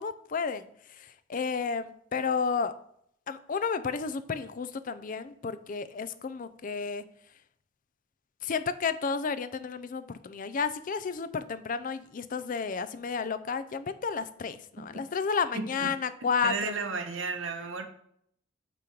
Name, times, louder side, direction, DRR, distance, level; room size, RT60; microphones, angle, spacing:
voice 1, 0.0-2.7 3.3-7.0 8.4-16.7, left 5 dB, 45° left, 12 dB, 0.4 m, -32 dB
voice 2, 15.5-15.9 16.4-17.9, right 4 dB, 75° right, 7 dB, 0.9 m, -33 dB
8.5 x 3.0 x 5.1 m, 0.68 s
head